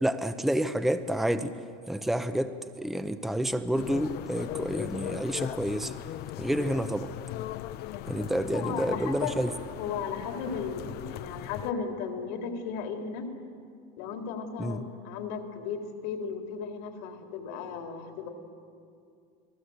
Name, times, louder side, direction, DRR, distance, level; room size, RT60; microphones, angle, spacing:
voice 1, 0.0-1.5 1.9-5.9 6.4-7.1 8.1-9.5 14.6-14.8, right 1 dB, ahead, 9 dB, 0.8 m, -29 dB
sound 1, 3.7-11.7, left 13 dB, 55° left, 0.8 m, -39 dB
voice 2, 8.5-9.4 9.8-13.3 14.0-18.3, left 6 dB, 75° left, 3 dB, 4.0 m, -35 dB
29.5 x 19.5 x 8.1 m, 2.4 s
supercardioid pair, 135°, 20 cm